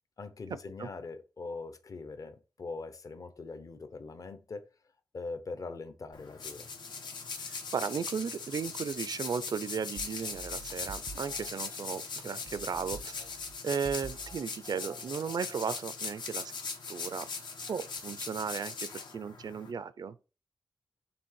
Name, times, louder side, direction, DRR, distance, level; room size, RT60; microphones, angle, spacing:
voice 1, 0.2-4.7 5.1-6.7, left 3 dB, 50° left, 0.8 m, -42 dB
sound 1, 6.1-19.7, left 4 dB, 80° left, 1.1 m, -40 dB
voice 2, 7.5-13.2 13.6-16.5 16.9-17.3 17.7-20.2, right 6 dB, 60° right, 0.5 m, -35 dB
sound 2, 10.0-11.5 12.2-14.5 14.8-15.8, right 4 dB, 85° right, 0.9 m, -49 dB
7.0 x 3.4 x 4.6 m
wide cardioid pair, 140°, 8 cm